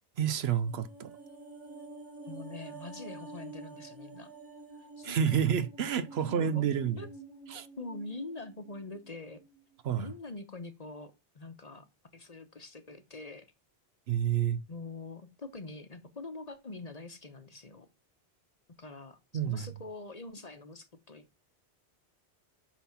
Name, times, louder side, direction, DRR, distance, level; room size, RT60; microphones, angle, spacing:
voice 1, 0.2-1.1 5.0-7.0 7.5-7.7 9.8-10.1 14.1-14.6 19.3-19.7, right 8 dB, 70° right, 0.9 m, -29 dB
sound 1, 0.6-9.1 9.4-9.5, right 2 dB, 30° right, 1.7 m, -48 dB
voice 2, 2.3-4.3 4.8-5.5 6.2-6.7 7.0-7.1 7.8-9.4 10.0-11.9 12.1-13.5 14.7-17.9 18.8-19.2 19.4-21.4, left 3 dB, 35° left, 1.0 m, -44 dB
6.0 x 5.7 x 5.7 m
omnidirectional pair, 1.2 m